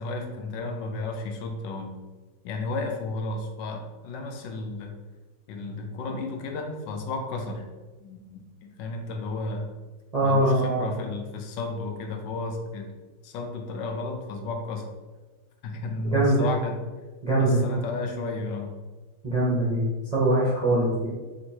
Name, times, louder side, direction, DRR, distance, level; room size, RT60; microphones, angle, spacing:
voice 1, 0.0-2.0 2.4-4.9 5.5-7.6 8.0-9.7 10.2-12.9 13.2-14.9 15.6-16.8 17.4-18.7 20.7-21.0, left 3 dB, 80° left, 3 dB, 1.3 m, -33 dB
voice 2, 10.1-10.8 16.1-16.5 17.2-17.8 19.2-19.8 20.1-21.1, right 1 dB, 40° right, -7 dB, 0.5 m, -22 dB
3.5 x 2.9 x 4.3 m, 1.3 s
omnidirectional pair, 2.0 m